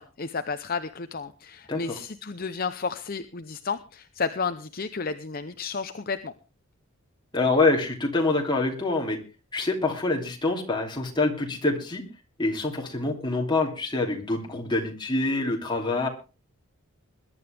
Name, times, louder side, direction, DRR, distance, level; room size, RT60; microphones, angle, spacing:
voice 1, 0.0-6.3, left 5 dB, 45° left, 9 dB, 0.7 m, -32 dB
voice 2, 7.3-9.2 9.5-12.0 12.4-16.1, left 2 dB, 20° left, 1 dB, 2.9 m, -25 dB
21.5 x 11.5 x 3.5 m, 0.32 s
head